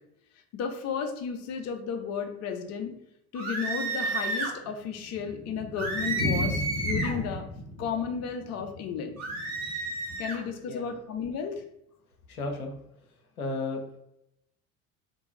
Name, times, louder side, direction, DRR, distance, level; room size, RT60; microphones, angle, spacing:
voice 1, 0.5-2.9 3.3-7.4 7.8-9.2 10.2-11.6, left 6 dB, 40° left, 5 dB, 0.6 m, -33 dB
sound 1, 3.4-4.6 5.8-7.2 9.2-10.4, right 2 dB, 35° right, 1.1 m, -31 dB
Thunder, 4.5-10.6 10.8-10.9 11.2-11.3 11.6-11.7 12.2-12.5, left 1 dB, 85° right, 1.0 m, -35 dB
voice 2, 12.3-12.7 13.4-14.0, left 2 dB, 85° left, 2 dB, 0.6 m, -33 dB
2.6 x 2.2 x 3.9 m, 0.80 s
figure-of-eight pair, 60°, 42 cm